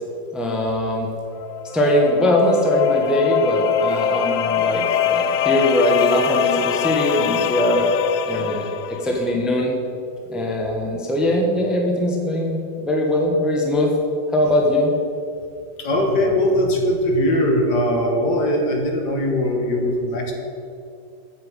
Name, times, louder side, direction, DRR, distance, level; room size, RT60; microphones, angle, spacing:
voice 1, 0.3-1.1 1.7-7.9 8.3-9.8 10.3-13.9 14.3-14.9, left 1 dB, ahead, -1 dB, 1.1 m, -21 dB
sound 1, 1.3-9.1, left 8 dB, 85° left, 0.7 m, -22 dB
voice 2, 15.8-20.3, equal, 65° left, 2 dB, 1.9 m, -20 dB
8.0 x 6.7 x 8.1 m, 2.5 s
omnidirectional pair, 2.0 m